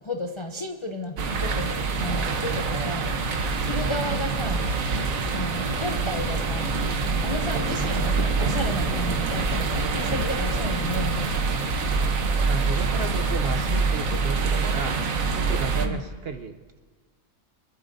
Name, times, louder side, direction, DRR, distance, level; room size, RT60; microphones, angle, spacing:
voice 1, 0.0-3.1 3.6-4.7 5.3-6.7 7.2-11.3 15.8-16.0, left 1 dB, 35° left, 3 dB, 0.5 m, -33 dB
sound 1, 1.2-15.9, right 4 dB, 75° right, 1.3 m, -26 dB
sound 2, 9.1-14.1, right 2 dB, 5° right, 4.0 m, -32 dB
voice 2, 12.5-16.8, right 5 dB, 55° right, 6 dB, 0.8 m, -34 dB
24.0 x 12.0 x 2.6 m, 1.3 s
omnidirectional pair, 1.4 m